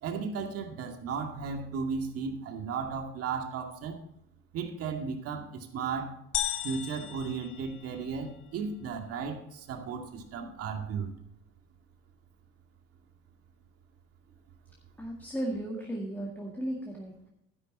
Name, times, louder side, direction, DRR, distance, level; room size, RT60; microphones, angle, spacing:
voice 1, 0.0-4.0 4.5-6.2 6.6-11.1, right 5 dB, 50° right, 4 dB, 2.3 m, -35 dB
sound 1, 6.3-8.3, left 11 dB, 40° left, 1.0 m, -35 dB
voice 2, 15.0-17.3, right 1 dB, 5° left, -1 dB, 2.0 m, -35 dB
12.5 x 10.5 x 4.2 m, 0.79 s
cardioid pair, 130°, 31 cm